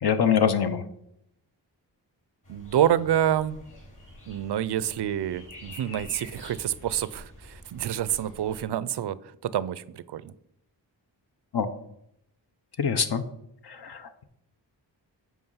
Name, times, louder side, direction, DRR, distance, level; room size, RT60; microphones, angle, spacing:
voice 1, 0.0-0.8 11.5-11.7 12.8-13.2 13.6-14.2, left 7 dB, 60° left, 0.9 m, -24 dB
sound 1, 2.4-8.7, left 1 dB, 45° left, 3.5 m, -47 dB
voice 2, 2.5-3.6 4.3-10.3, right 11 dB, 65° right, 0.5 m, -27 dB
7.8 x 5.0 x 5.5 m
wide cardioid pair, 75°, 44 cm